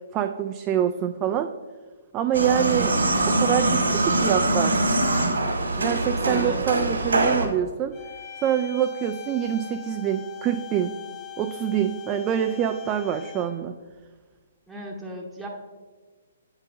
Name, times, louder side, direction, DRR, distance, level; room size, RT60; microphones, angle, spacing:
voice 1, 0.1-1.5 2.1-3.0 3.3-4.8 5.8-7.9 8.4-11.0 11.4-13.7, right 10 dB, 25° right, 6 dB, 0.3 m, -25 dB
sound 1, 2.3-7.5, right 2 dB, 80° right, 1.7 m, -23 dB
voice 2, 6.3-6.6 14.7-15.5, equal, ahead, -4 dB, 0.9 m, -35 dB
sound 2, 7.9-13.7, left 10 dB, 25° left, 1.5 m, -41 dB
8.0 x 5.6 x 3.9 m, 1.4 s
figure-of-eight pair, 135°, 0 cm